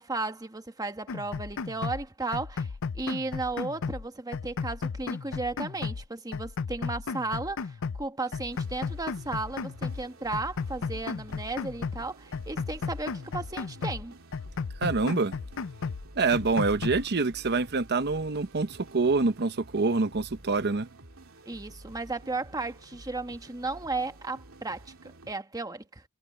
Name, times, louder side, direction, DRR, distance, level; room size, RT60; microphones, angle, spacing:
voice 1, 0.0-14.2 21.5-26.0, right 3 dB, 15° right, 1.2 m, -35 dB
sound 1, 1.1-2.1 2.3-4.1 4.3-6.1 6.3-8.1 8.3-10.1 10.3-12.1 12.3-14.1 14.3-16.1 16.3-17.1, left 5 dB, 60° left, 0.5 m, -34 dB
sound 2, 8.5-25.3, right 1 dB, 65° right, 2.9 m, -51 dB
voice 2, 14.8-15.4 16.2-20.9, right 3 dB, 50° right, 0.8 m, -26 dB
head